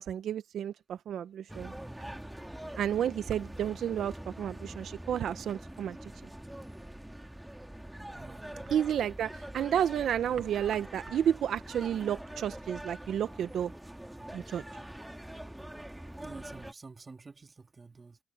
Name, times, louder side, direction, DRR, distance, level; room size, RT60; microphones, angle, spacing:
voice 1, 0.0-1.7 2.8-6.1 8.7-13.7 14.3-14.6, right 9 dB, 65° right, 0.6 m, -31 dB
sound 1, 1.5-16.7, right 1 dB, 5° right, 2.2 m, -44 dB
voice 2, 8.1-8.7 16.2-18.2, right 4 dB, 30° right, 1.8 m, -49 dB
cardioid pair, 90°, 0 cm